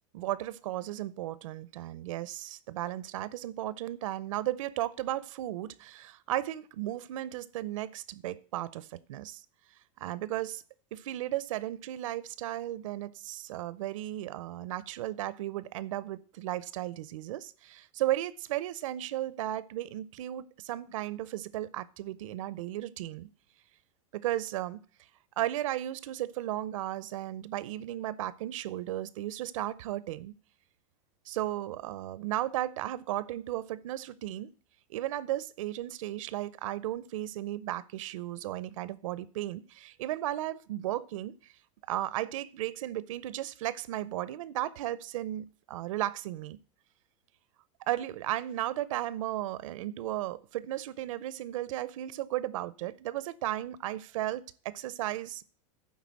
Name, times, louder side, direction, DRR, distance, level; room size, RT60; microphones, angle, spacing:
voice 1, 0.1-9.4 10.0-10.6 10.9-23.3 24.1-24.8 25.4-30.3 31.3-34.5 34.9-41.3 41.9-46.6 47.9-55.4, right 14 dB, 75° right, 0.6 m, -35 dB
9.6 x 4.0 x 7.2 m
supercardioid pair, 140°, 17 cm